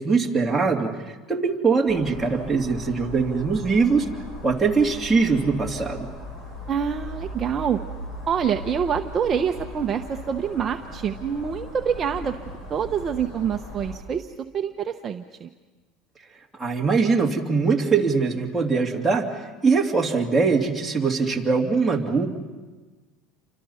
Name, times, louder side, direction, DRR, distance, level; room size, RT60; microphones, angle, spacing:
voice 1, 0.0-4.1 4.4-6.1 16.5-22.3, right 4 dB, 5° right, -2 dB, 2.8 m, -22 dB
sound 1, 1.9-14.0, left 1 dB, 40° left, 7.0 m, -38 dB
voice 2, 6.7-7.8 8.3-12.3 12.7-15.5, right 7 dB, 30° right, 5 dB, 0.9 m, -26 dB
29.0 x 25.0 x 5.7 m, 1.3 s
cardioid pair, 140°, 0 cm